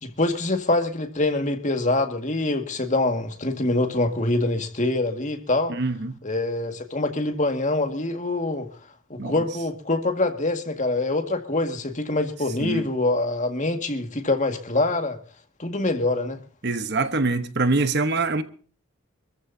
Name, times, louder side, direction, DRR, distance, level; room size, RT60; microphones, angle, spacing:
voice 1, 0.0-5.7 6.2-8.7 9.1-15.2 15.6-16.4, left 2 dB, 35° left, 2.0 m, -25 dB
voice 2, 5.7-6.1 9.2-9.4 12.6-12.8 16.6-18.4, right 3 dB, 50° right, 1.2 m, -24 dB
26.5 x 14.5 x 2.8 m
head